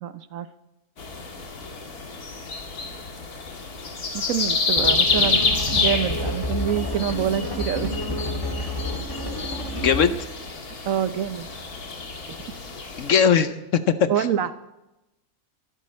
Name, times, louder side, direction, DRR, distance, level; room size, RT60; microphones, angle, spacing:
voice 1, 0.0-0.5 4.1-7.9 10.8-11.5 14.1-14.5, right 9 dB, 65° right, 12 dB, 1.1 m, -26 dB
sound 1, 1.0-13.1, left 4 dB, 80° left, 2.3 m, -28 dB
Hammer, 4.1-10.3, left 7 dB, 30° right, 4.8 m, -45 dB
sound 2, 4.8-10.3, left 1 dB, 15° left, 2.1 m, -30 dB
voice 2, 9.7-10.2 13.0-14.3, left 7 dB, 60° left, 11 dB, 1.1 m, -20 dB
24.0 x 12.0 x 4.3 m, 0.96 s
omnidirectional pair, 1.6 m